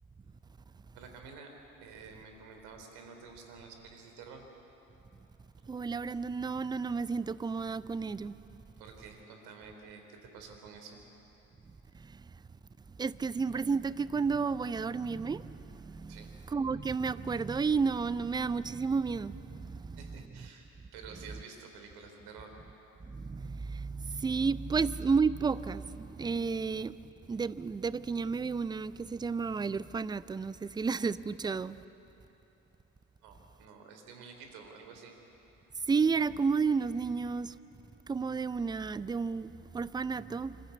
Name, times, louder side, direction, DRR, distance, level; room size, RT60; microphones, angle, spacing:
voice 1, 0.9-1.5 1.8-4.4 8.8-11.0 16.1-16.3 20.0-20.7 20.9-22.6 33.2-35.2, right 5 dB, 65° right, 3.5 m, -50 dB
voice 2, 5.7-8.3 11.9-12.3 13.0-16.2 16.5-20.0 23.1-27.0 27.3-31.8 35.9-37.6 38.1-40.6, right 5 dB, 10° right, 0.4 m, -32 dB
27.0 x 13.0 x 8.4 m
figure-of-eight pair, 60°, 42 cm